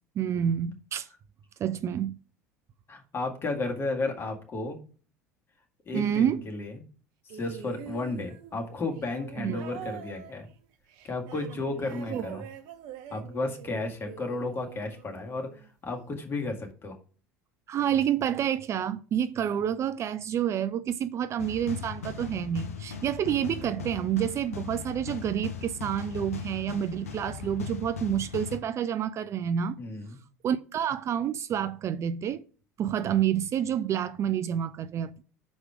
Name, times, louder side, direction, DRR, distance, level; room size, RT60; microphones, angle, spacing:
voice 1, 0.2-1.1 1.6-2.1 5.9-6.4 9.4-9.6 12.0-12.4 17.7-29.8 30.4-32.4 32.8-35.2, right 9 dB, 35° right, 0.4 m, -28 dB
voice 2, 2.9-4.8 5.9-6.8 7.3-10.5 11.0-12.4 13.1-17.0 29.8-30.2, left 3 dB, 30° left, 1.8 m, -33 dB
sound 1, 7.3-15.7 16.7-16.8, right 9 dB, 55° right, 0.8 m, -45 dB
sound 2, 21.4-28.6, left 6 dB, 75° left, 0.8 m, -38 dB
6.3 x 4.8 x 4.7 m
figure-of-eight pair, 70°, 8 cm